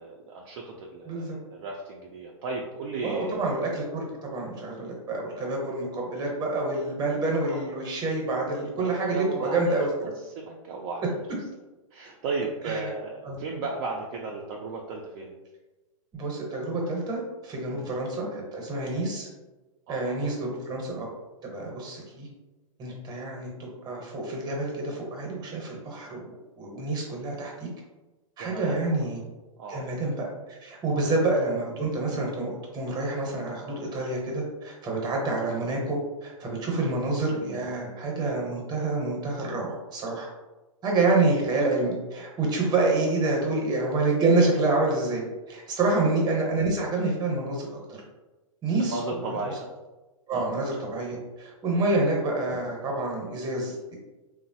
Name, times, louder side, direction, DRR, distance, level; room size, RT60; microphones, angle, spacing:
voice 1, 0.0-3.5 7.5-7.6 8.8-10.1 10.4-11.1 11.9-15.3 17.7-17.9 19.9-20.3 28.4-28.8 29.6-29.9 30.9-31.1 36.7-36.9 48.8-49.7 50.3-50.5 51.7-51.8, right 3 dB, 45° right, -1 dB, 0.4 m, -35 dB
voice 2, 1.1-1.4 3.0-9.9 12.6-12.9 13.2-13.4 16.1-19.3 19.9-21.0 21.5-22.3 22.8-27.7 28.4-29.2 29.7-30.3 30.6-40.3 40.8-47.7 48.6-49.4 50.3-53.9, right 2 dB, 25° right, -1 dB, 0.8 m, -27 dB
3.0 x 2.0 x 2.7 m, 1.2 s
hypercardioid pair, 120°, 18 cm